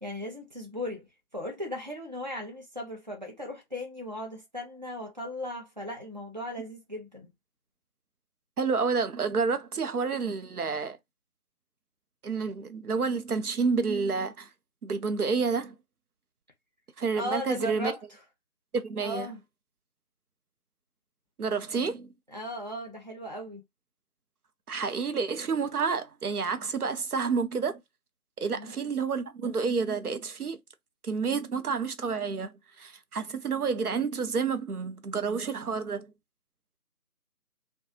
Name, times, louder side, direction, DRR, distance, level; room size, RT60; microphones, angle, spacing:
voice 1, 0.0-1.1 1.3-7.3 17.2-18.0 19.0-19.4 22.3-23.6 28.5-28.7, left 1 dB, 30° right, 0.7 m, -37 dB
voice 2, 8.6-11.0 12.2-14.5 14.8-15.7 17.0-17.9 18.7-19.3 21.4-22.1 24.7-27.8 28.4-30.6 31.0-36.1, right 5 dB, 80° right, 0.7 m, -29 dB
2.8 x 2.2 x 2.7 m
figure-of-eight pair, 165°, 45 cm